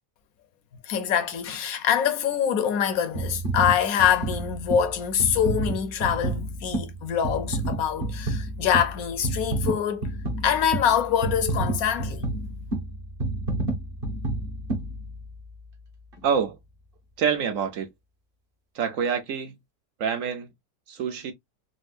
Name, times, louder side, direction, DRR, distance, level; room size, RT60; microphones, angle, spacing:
voice 1, 0.8-10.1 10.4-12.2, left 9 dB, 65° left, 1.1 m, -24 dB
sound 1, 3.2-15.6 16.1-16.2, right 2 dB, 40° right, 1.0 m, -30 dB
voice 2, 16.2-16.6 17.2-17.9 18.7-19.6 20.0-20.5 20.9-21.3, right 7 dB, 65° right, 0.9 m, -26 dB
4.2 x 2.0 x 2.4 m
omnidirectional pair, 1.8 m